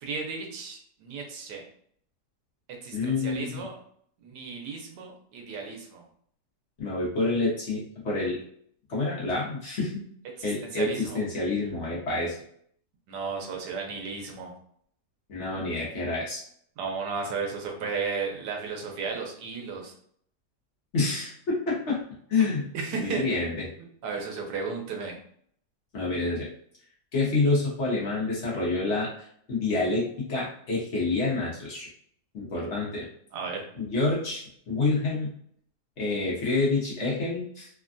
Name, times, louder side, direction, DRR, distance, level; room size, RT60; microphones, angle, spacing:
voice 1, 0.0-1.6 2.8-3.8 4.2-6.0 10.4-11.2 13.1-14.5 16.8-19.9 22.7-23.3 24.0-25.2 33.3-33.6, right 5 dB, 90° right, 1 dB, 1.3 m, -34 dB
voice 2, 2.9-3.6 6.8-8.4 8.9-9.9 10.4-12.4 15.3-16.4 20.9-22.0 22.3-22.6 23.0-23.7 25.9-26.5 27.1-31.9 32.3-33.1 33.7-35.3 36.0-37.7, left 3 dB, 50° left, -5 dB, 1.0 m, -28 dB
3.3 x 2.2 x 2.5 m, 0.63 s
omnidirectional pair, 1.7 m